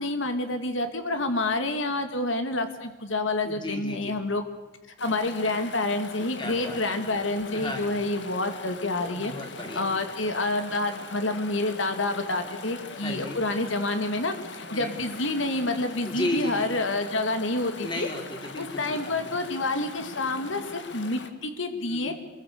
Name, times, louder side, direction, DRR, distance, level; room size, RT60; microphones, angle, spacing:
voice 1, 0.0-4.4 5.0-9.3 9.7-18.1 18.6-22.1, left 2 dB, 75° left, 7 dB, 2.4 m, -28 dB
voice 2, 3.4-4.2 6.4-7.0 7.5-8.0 9.0-9.9 13.0-13.4 14.7-14.9 16.0-16.7 17.8-19.3 21.8-22.1, left 1 dB, 25° left, 3 dB, 4.2 m, -34 dB
Chatter / Stream, 5.0-21.3, left 3 dB, 60° left, 2.3 m, -41 dB
28.0 x 22.5 x 6.8 m, 1.2 s
head